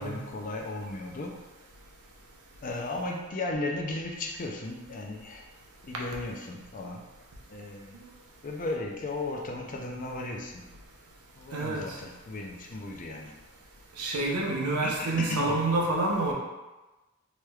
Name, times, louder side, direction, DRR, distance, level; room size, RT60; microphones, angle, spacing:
voice 1, 0.0-1.4 2.6-5.5 5.8-7.1 7.5-8.0 8.4-10.7 11.4-13.3 14.8-15.6, left 2 dB, 35° left, 1 dB, 0.4 m, -35 dB
voice 2, 11.5-12.0 14.0-16.3, right 2 dB, 85° right, -2 dB, 0.7 m, -28 dB
3.2 x 3.1 x 2.3 m, 1.1 s
head